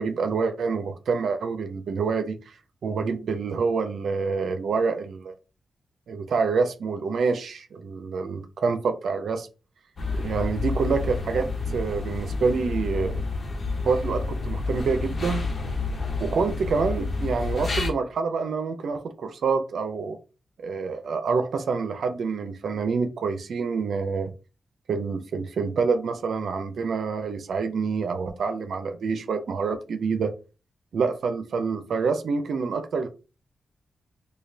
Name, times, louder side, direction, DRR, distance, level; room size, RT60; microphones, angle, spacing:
voice 1, 0.0-2.4 2.8-5.3 6.1-9.5 10.1-13.3 13.8-15.4 16.2-20.2 20.6-24.3 24.9-30.3 30.9-33.1, right 5 dB, 75° right, 0.5 m, -27 dB
sound 1, 10.0-17.9, left 3 dB, 50° left, 1.1 m, -29 dB
4.9 x 2.2 x 2.7 m
cardioid pair, 70°, 0 cm